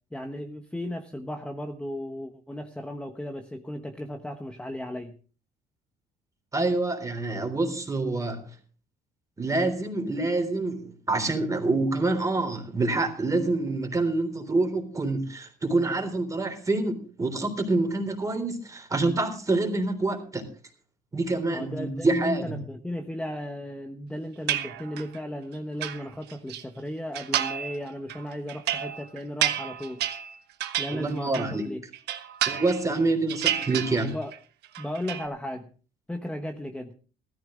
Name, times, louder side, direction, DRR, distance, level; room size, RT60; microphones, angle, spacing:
voice 1, 0.1-5.2 21.5-30.0 30.8-31.8 34.0-34.3 34.8-35.7 36.1-36.9, left 1 dB, 5° left, 5 dB, 1.1 m, -35 dB
voice 2, 6.5-8.5 9.4-20.5 21.1-22.6 30.9-31.6 32.5-34.1, right 2 dB, 20° right, 6 dB, 3.7 m, -26 dB
sound 1, 24.5-25.2 25.5-26.6 27.1-27.8 28.1-31.6 31.9-33.0 33.3-34.4 34.6-35.3, right 11 dB, 80° right, 1.4 m, -30 dB
16.0 x 14.0 x 3.8 m, 0.39 s
cardioid pair, 110°, 17 cm